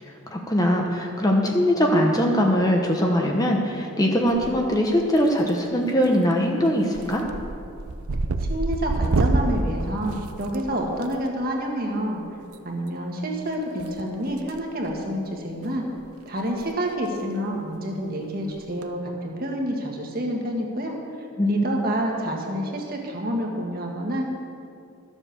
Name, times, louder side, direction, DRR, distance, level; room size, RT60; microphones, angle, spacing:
voice 1, 0.0-7.2 21.4-21.6, equal, 15° left, 1 dB, 0.9 m, -21 dB
sound 1, 4.3-4.9 5.2-5.7 6.0-6.3 6.7-11.1 12.4-12.6 13.8-14.6 14.9-15.1 15.6-15.7 16.0-16.1 16.4-16.6 16.9-17.0 18.6-18.8, right 2 dB, 80° right, 0.6 m, -27 dB
voice 2, 8.5-12.2 12.6-15.8 16.3-21.0 21.5-24.2, equal, 40° right, 0 dB, 1.6 m, -28 dB
13.0 x 7.4 x 6.8 m, 2.5 s
head